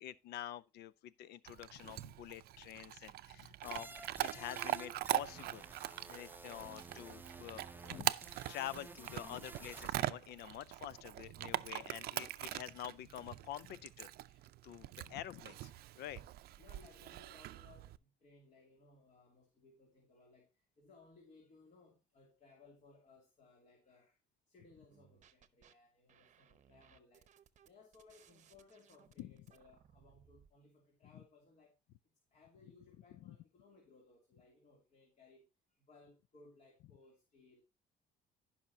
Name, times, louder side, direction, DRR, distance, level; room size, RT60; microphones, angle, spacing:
voice 1, 0.0-8.1 8.5-14.1 14.6-15.7 16.0-16.2 29.2-29.3 33.2-33.4, left 12 dB, 75° left, 0.5 m, -47 dB
Chewing mastication / Dog, 1.5-18.0, right 14 dB, 65° right, 0.5 m, -42 dB
voice 2, 3.0-3.7 16.6-24.2 24.5-27.3 27.6-31.7 32.3-35.4 35.7-37.6, left 3 dB, 45° left, 2.7 m, -64 dB
sound 1, 3.6-9.9, right 3 dB, 10° right, 0.7 m, -53 dB
sound 2, 24.9-25.7 26.1-30.5, right 9 dB, 45° right, 0.8 m, -66 dB
15.0 x 5.7 x 2.7 m
cardioid pair, 110°, 17 cm